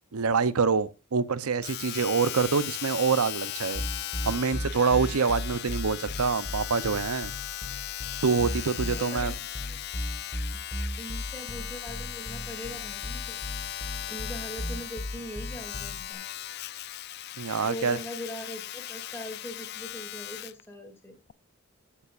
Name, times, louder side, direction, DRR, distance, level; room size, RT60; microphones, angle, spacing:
voice 1, 0.1-3.9 4.2-7.3 8.2-9.3 17.4-18.0, right 5 dB, 90° right, 0.7 m, -26 dB
Domestic sounds home sounds, 1.6-20.6 21.3-21.4, left 13 dB, 50° left, 0.4 m, -38 dB
sound 1, 3.7-16.1, left 1 dB, 30° left, 1.9 m, -35 dB
voice 2, 8.9-9.4 11.0-13.4 14.1-16.3 17.6-21.2, equal, 10° left, 2.4 m, -41 dB
15.0 x 7.3 x 2.5 m
head